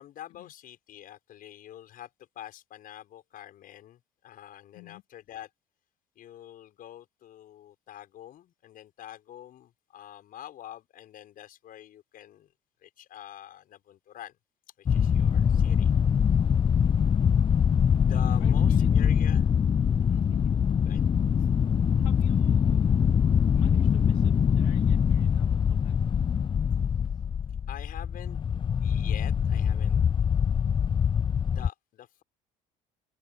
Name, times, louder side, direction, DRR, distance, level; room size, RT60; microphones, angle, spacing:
voice 1, 0.0-5.5 6.2-12.5 12.8-14.4 14.8-15.9 18.0-19.5 20.0-20.3 20.8-21.0 21.4-21.5 27.7-28.4 28.8-30.0 31.5-32.2, left 12 dB, 60° left, 5.9 m, -46 dB
sound 1, 14.9-31.7, left 7 dB, 30° left, 0.5 m, -23 dB
voice 2, 18.4-19.1 20.3-20.5 22.0-23.1 23.5-26.0, left 24 dB, 80° left, 2.6 m, -50 dB
open air
hypercardioid pair, 70°, 17 cm